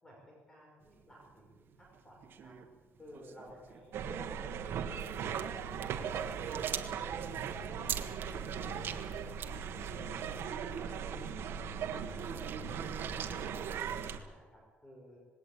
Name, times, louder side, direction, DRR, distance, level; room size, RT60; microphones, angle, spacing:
voice 1, 0.0-1.5 1.8-2.2 2.4-2.5 3.0-4.5 5.0-6.3 6.6-6.7 7.0-8.1 8.6-8.8 9.1-9.6 10.0-10.3 10.7-12.5 13.0-13.4 13.9-15.2, equal, 20° left, -2 dB, 5.6 m, -54 dB
sound 1, 0.8-14.2, right 8 dB, 55° right, 1.5 m, -47 dB
sound 2, 3.9-14.2, right 7 dB, 75° right, 1.4 m, -38 dB
20.0 x 17.5 x 8.5 m, 1.4 s
cardioid pair, 155°, 4 cm